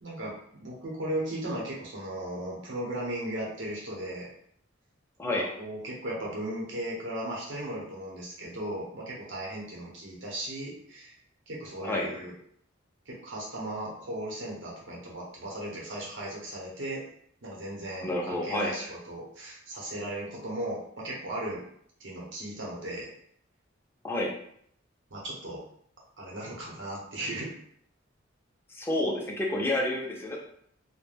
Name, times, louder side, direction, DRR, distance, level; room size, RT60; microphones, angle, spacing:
voice 1, 0.0-4.3 5.3-11.2 11.5-12.3 13.1-17.0 17.4-21.6 22.0-23.1 25.1-25.6 26.2-27.6, right 1 dB, 65° right, -4 dB, 0.8 m, -36 dB
voice 2, 11.8-12.1 18.0-18.8 24.0-24.3 28.7-30.4, left 1 dB, 10° left, -2 dB, 0.5 m, -29 dB
2.3 x 2.1 x 3.2 m, 0.66 s
head